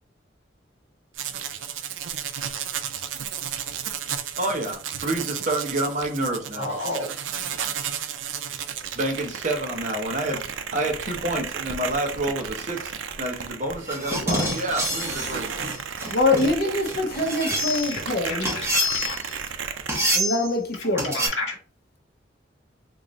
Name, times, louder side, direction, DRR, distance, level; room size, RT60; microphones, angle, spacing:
sound 1, 1.1-20.2, right 8 dB, 85° right, 0.4 m, -34 dB
voice 1, 4.4-6.8 9.0-10.4 10.7-12.9 13.2-15.5, right 1 dB, 40° right, 0.7 m, -28 dB
voice 2, 6.5-7.1 17.9-19.2 20.8-21.6, left 2 dB, 70° left, 1.4 m, -32 dB
sound 2, 13.8-18.0 18.5-19.3 19.9-20.5 21.0-21.3, equal, 15° right, 1.0 m, -27 dB
voice 3, 16.1-18.5 20.1-21.3, left 2 dB, 55° left, 0.7 m, -24 dB
3.8 x 2.5 x 3.0 m
head